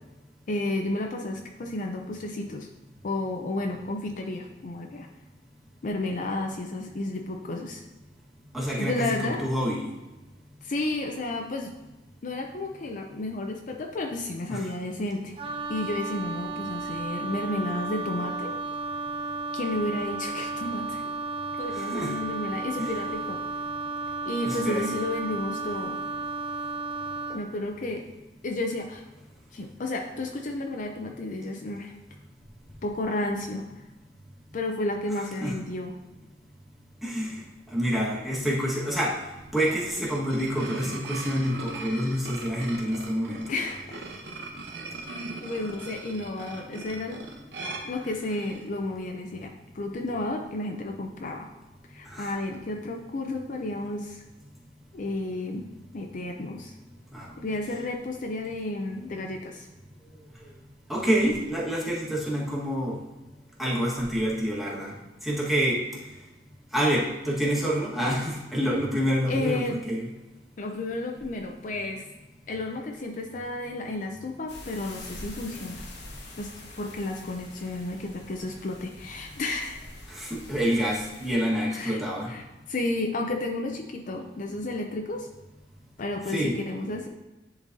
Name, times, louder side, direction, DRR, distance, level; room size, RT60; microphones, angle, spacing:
voice 1, 0.5-2.7 3.0-5.1 5.8-7.8 8.8-9.5 10.6-11.7 12.2-15.4 15.7-18.5 19.5-21.0 21.6-23.4 24.2-26.0 27.3-28.0 28.4-29.0 29.5-31.9 32.8-33.6 34.5-35.9 43.5-43.8 45.4-47.2 47.8-51.5 51.9-54.2 54.9-55.7 55.9-56.7 57.4-59.7 69.3-69.8 70.6-72.1 72.5-75.8 76.4-79.8 81.7-82.0 82.3-85.3 86.0-87.1, left 2 dB, 45° left, 2 dB, 0.5 m, -32 dB
voice 2, 8.5-9.9 14.5-14.7 21.7-22.1 22.8-22.9 24.4-24.8 35.4-35.5 37.0-37.4 37.7-39.1 39.5-43.4 52.0-52.4 57.1-57.3 60.9-63.0 63.6-64.9 65.2-65.8 66.7-70.1 80.1-82.3 86.3-86.5, equal, ahead, -6 dB, 1.4 m, -27 dB
Wind instrument woodwind instrument, 15.4-27.5, right 3 dB, 30° right, 0.5 m, -33 dB
sound 1, 39.4-48.7, right 2 dB, 75° right, 0.8 m, -39 dB
sound 2, 74.5-81.3, left 1 dB, 75° left, 1.1 m, -45 dB
10.0 x 3.9 x 2.7 m, 1.1 s
head